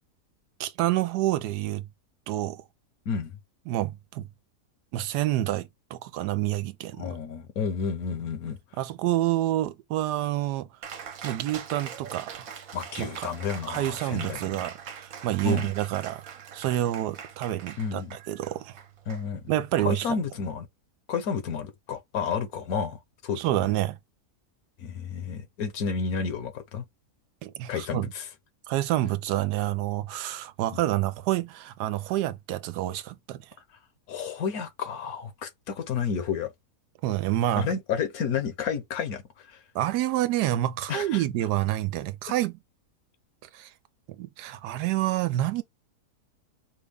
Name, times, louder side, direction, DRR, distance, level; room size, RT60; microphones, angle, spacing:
voice 1, 0.6-1.9 2.3-2.6 3.7-4.2 4.9-7.2 8.8-10.7 11.2-12.5 13.0-13.3 13.7-16.3 16.5-18.0 18.3-18.8 19.5-20.2 23.4-24.0 27.4-28.1 28.7-33.4 37.0-37.7 39.7-42.6 43.5-43.7 44.2-45.6, right 14 dB, 90° right, 1.2 m, -28 dB
voice 2, 7.0-8.6 12.7-14.6 15.4-15.7 17.8-18.2 19.1-19.4 19.8-20.7 21.1-23.4 24.8-26.8 27.7-28.3 34.1-36.5 37.6-39.6 40.9-41.2, left 6 dB, 70° left, 1.3 m, -31 dB
Cheering, 10.8-19.8, right 7 dB, 65° right, 1.2 m, -42 dB
5.3 x 2.3 x 3.5 m
omnidirectional pair, 1.7 m